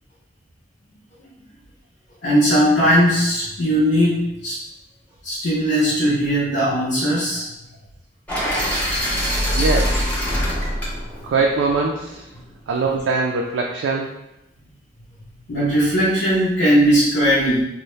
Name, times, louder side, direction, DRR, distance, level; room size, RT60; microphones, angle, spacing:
voice 1, 2.2-4.6 5.2-7.5 15.5-17.6, equal, 65° left, -9 dB, 0.6 m, -18 dB
sound 1, 8.3-12.3, equal, 10° left, 0.5 m, -23 dB
voice 2, 9.6-10.1 11.2-12.2 12.7-14.1, right 4 dB, 80° right, -1 dB, 0.3 m, -22 dB
2.6 x 2.0 x 3.0 m, 0.90 s
head